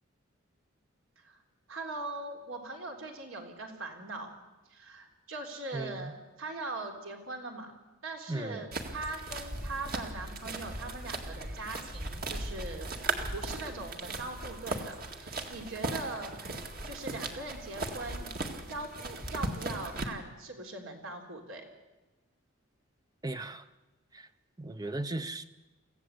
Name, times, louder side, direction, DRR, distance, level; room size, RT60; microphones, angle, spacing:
voice 1, 1.7-4.3 4.7-7.7 8.0-13.0 13.3-16.6 16.9-18.3 18.7-21.6, right 2 dB, 70° right, 3.7 m, -41 dB
voice 2, 8.3-8.6 23.2-23.6 24.6-25.5, right 2 dB, 15° right, 0.6 m, -36 dB
sound 1, 8.7-20.1, right 2 dB, 45° right, 2.1 m, -37 dB
25.0 x 15.5 x 8.3 m
head